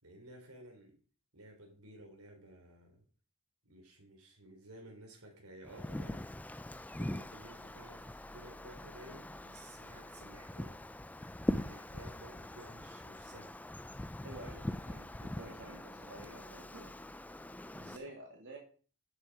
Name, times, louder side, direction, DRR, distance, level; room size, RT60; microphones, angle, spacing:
voice 1, 0.0-1.0 1.3-3.1 3.6-6.3 6.7-8.1 8.3-10.8 11.6-13.5 17.7-18.1, right 1 dB, 80° right, 3 dB, 3.6 m, -54 dB
Wind, 5.6-18.0, left 1 dB, 5° left, 0.4 m, -42 dB
voice 2, 14.2-16.9 17.9-18.6, right 1 dB, 60° right, -1 dB, 3.1 m, -50 dB
13.0 x 7.5 x 4.8 m, 0.41 s
head